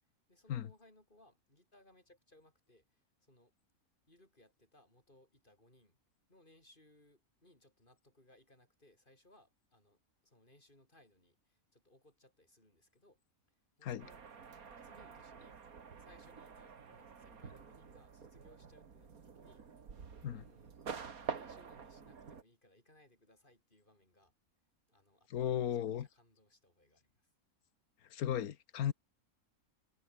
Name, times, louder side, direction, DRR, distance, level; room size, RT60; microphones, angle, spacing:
voice 1, 0.0-3.5 4.1-6.0 6.3-13.2 13.5-14.2 14.8-15.6 16.0-20.8 21.2-24.3 24.9-27.3 28.7-28.9, left 1 dB, 35° left, 6.3 m, -66 dB
sound 1, 14.0-22.4, right 6 dB, 80° right, 2.3 m, -48 dB
voice 2, 25.3-26.1 28.1-28.9, left 10 dB, 90° left, 1.5 m, -35 dB
omnidirectional pair, 1.5 m